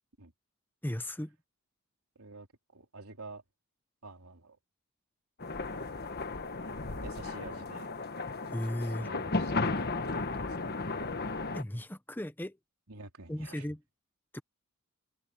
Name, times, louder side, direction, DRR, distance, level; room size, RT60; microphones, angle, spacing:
voice 1, 0.8-1.3 8.5-9.1 11.5-12.6 13.3-13.8 14.3-14.4, left 1 dB, 10° left, 0.9 m, -36 dB
voice 2, 2.2-2.5 2.7-3.4 4.0-4.6 7.0-7.9 9.0-10.6 12.9-13.8, right 3 dB, 85° right, 3.6 m, -49 dB
sound 1, 5.4-11.6, left 3 dB, 45° left, 1.6 m, -34 dB
head